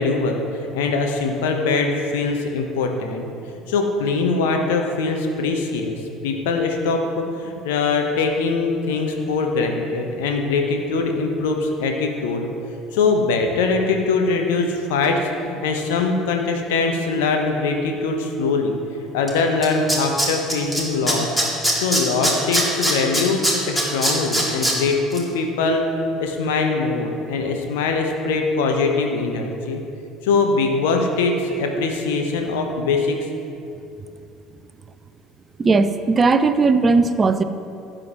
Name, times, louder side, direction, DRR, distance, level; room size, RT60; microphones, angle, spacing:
voice 1, 0.0-3.2 3.7-12.5 12.9-15.2 15.4-18.8 19.1-21.3 21.8-29.8 30.2-33.2, left 4 dB, 65° left, 3 dB, 1.1 m, -22 dB
Tools, 19.3-19.4 19.6-20.8 21.1-24.7 25.1-25.2, equal, 10° left, 2.6 m, -20 dB
voice 2, 35.6-37.4, right 4 dB, 25° right, 11 dB, 0.5 m, -17 dB
17.0 x 7.6 x 3.1 m, 2.7 s
figure-of-eight pair, 60°, 0 cm